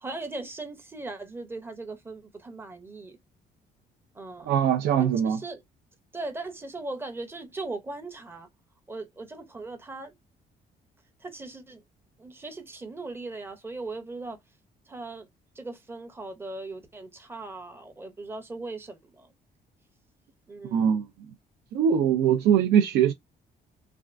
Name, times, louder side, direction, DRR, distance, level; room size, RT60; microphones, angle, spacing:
voice 1, 0.0-3.2 4.1-4.5 5.0-5.6 6.1-8.5 8.9-10.1 11.2-11.8 12.2-14.4 14.9-15.3 15.6-19.3 20.5-21.0, right 2 dB, 15° right, 0.6 m, -39 dB
voice 2, 4.5-5.4 20.7-21.1 21.7-23.1, right 8 dB, 85° right, 0.4 m, -22 dB
3.3 x 2.3 x 2.4 m
cardioid pair, 175°, 17 cm